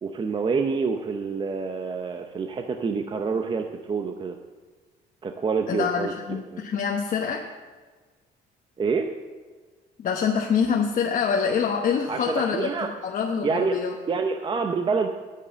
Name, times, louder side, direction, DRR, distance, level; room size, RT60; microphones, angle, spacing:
voice 1, 0.0-4.3 5.2-6.6 8.8-9.1 12.1-12.9 13.4-13.8 14.1-15.1, right 5 dB, 30° right, 5 dB, 0.7 m, -27 dB
voice 2, 5.7-7.5 10.0-12.7 13.0-14.0, left 6 dB, 50° left, 1 dB, 1.0 m, -25 dB
9.5 x 8.4 x 6.9 m, 1.4 s
cardioid pair, 110°, 17 cm